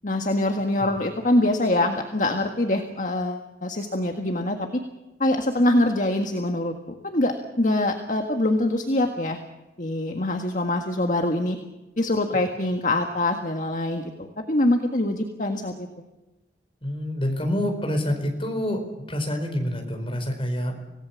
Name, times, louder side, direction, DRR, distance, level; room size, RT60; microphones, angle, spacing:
voice 1, 0.0-4.8 5.2-6.7 7.0-9.4 9.8-11.6 12.0-15.7, left 1 dB, 45° left, 4 dB, 1.7 m, -24 dB
voice 2, 16.8-20.7, left 1 dB, 30° left, 4 dB, 4.7 m, -27 dB
26.5 x 18.0 x 7.3 m, 1.1 s
head